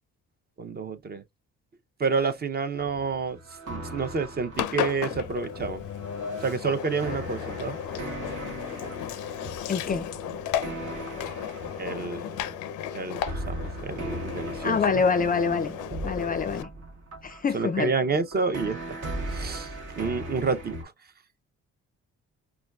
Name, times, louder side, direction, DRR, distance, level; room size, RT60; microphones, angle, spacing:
voice 1, 0.6-1.2 2.0-3.4 3.7-5.8 6.4-7.8 11.8-12.4 12.9-15.0 17.5-19.0 19.3-20.9, right 4 dB, 35° right, 0.5 m, -29 dB
sound 1, 2.8-12.5 13.3-20.8, right 1 dB, 85° right, 1.2 m, -39 dB
Engine, 4.5-16.6, left 9 dB, 85° left, 0.5 m, -34 dB
voice 2, 9.7-10.0 14.6-15.7 16.0-16.7 17.2-17.9, left 5 dB, 30° left, 0.4 m, -26 dB
5.0 x 2.3 x 2.2 m
cardioid pair, 90°, 30 cm